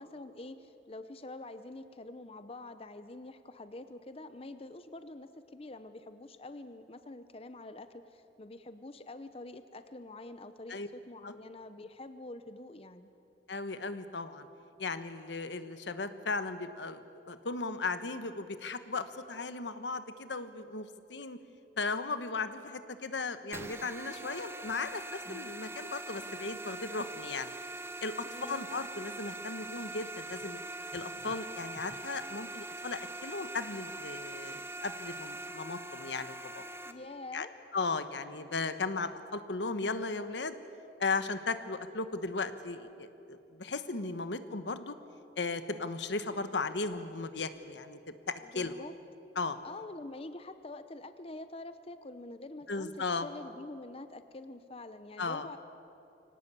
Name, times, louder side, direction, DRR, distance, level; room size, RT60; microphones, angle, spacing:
voice 1, 0.0-13.1 28.2-28.7 36.8-37.5 48.4-48.9 49.6-55.6, left 2 dB, 35° left, 11 dB, 0.7 m, -46 dB
voice 2, 13.5-14.5 14.8-21.4 21.8-27.5 28.0-30.6 30.9-36.6 37.3-37.5 37.7-40.5 41.0-44.9 45.4-48.0 48.3-48.7 49.4-49.6 52.7-53.3 55.2-55.5, left 3 dB, 85° left, 11 dB, 1.2 m, -36 dB
sound 1, 23.5-36.9, right 2 dB, 15° right, 1.0 m, -43 dB
24.5 x 18.0 x 8.5 m, 2.8 s
head